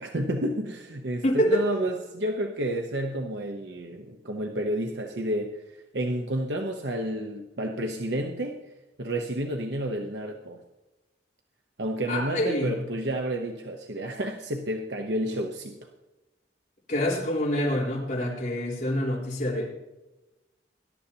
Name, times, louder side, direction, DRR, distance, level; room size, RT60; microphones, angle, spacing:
voice 1, 0.0-5.6 5.9-8.6 9.0-10.6 11.8-15.8, right 1 dB, 80° right, 3 dB, 0.9 m, -30 dB
voice 2, 1.2-1.7 12.1-12.7 16.9-19.7, left 1 dB, 45° left, -3 dB, 4.0 m, -26 dB
21.0 x 11.5 x 2.9 m, 1.0 s
head